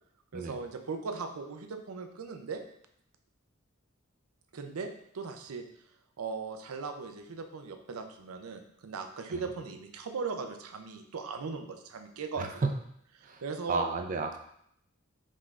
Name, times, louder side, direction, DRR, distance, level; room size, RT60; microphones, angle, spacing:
voice 1, 0.3-2.6 4.5-5.6 6.2-12.5 13.4-13.8, right 4 dB, 85° right, 6 dB, 0.5 m, -38 dB
voice 2, 12.4-12.7 13.2-13.4 13.7-14.4, right 4 dB, 40° right, 5 dB, 0.4 m, -32 dB
5.5 x 3.2 x 2.4 m, 0.71 s
head